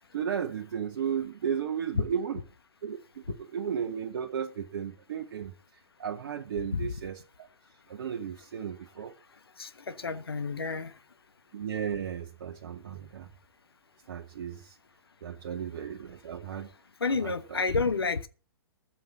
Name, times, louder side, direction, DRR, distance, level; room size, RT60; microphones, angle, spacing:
voice 1, 0.1-2.4 2.8-3.0 3.3-5.5 6.0-7.5 7.9-9.1 11.5-13.3 14.1-14.8 15.2-16.7 17.2-17.6, right 8 dB, 50° right, 1.1 m, -34 dB
voice 2, 9.6-10.9 17.0-18.3, left 4 dB, 70° left, 1.2 m, -30 dB
14.5 x 6.3 x 6.9 m
figure-of-eight pair, 115°, 13 cm